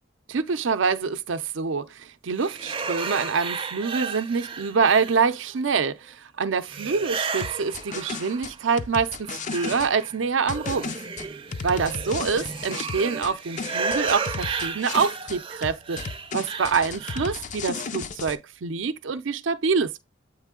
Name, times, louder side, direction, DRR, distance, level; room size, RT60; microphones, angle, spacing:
voice 1, 0.3-11.0 11.6-16.0 16.3-20.0, right 5 dB, 80° right, 0.5 m, -26 dB
sound 1, 2.4-5.5 6.6-8.6 9.0-17.5, right 5 dB, 30° right, 0.5 m, -33 dB
sound 2, 7.4-9.9 10.5-13.3 13.6-15.4 15.6-18.4, left 5 dB, 40° left, 0.4 m, -34 dB
8.2 x 3.2 x 3.6 m
head